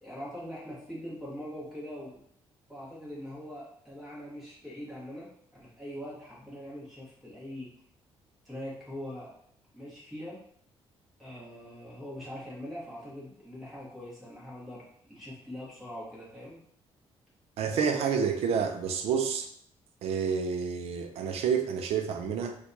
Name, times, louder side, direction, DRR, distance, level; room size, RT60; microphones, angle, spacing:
voice 1, 0.0-2.2 2.7-7.7 8.4-9.3 9.7-10.4 11.2-16.6, equal, ahead, -8 dB, 1.2 m, -42 dB
voice 2, 17.6-19.5 20.0-22.6, right 6 dB, 80° right, 6 dB, 0.5 m, -29 dB
4.5 x 2.3 x 2.7 m, 0.65 s
cardioid pair, 165°, 10 cm